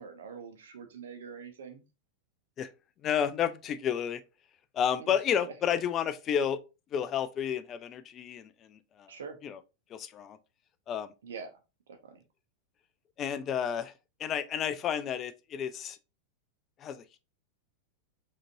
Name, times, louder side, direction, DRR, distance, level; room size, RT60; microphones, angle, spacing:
voice 1, 0.0-1.8 5.0-5.5 9.1-9.4 11.2-11.5 11.9-12.2, right 6 dB, 60° right, 0.8 m, -44 dB
voice 2, 3.0-4.2 4.7-6.6 6.9-9.1 9.4-9.6 9.9-10.4 10.9-11.1 13.2-13.9 14.2-16.0 16.8-17.2, left 8 dB, 30° left, 0.3 m, -31 dB
5.1 x 2.7 x 2.5 m
figure-of-eight pair, 90°, 0 cm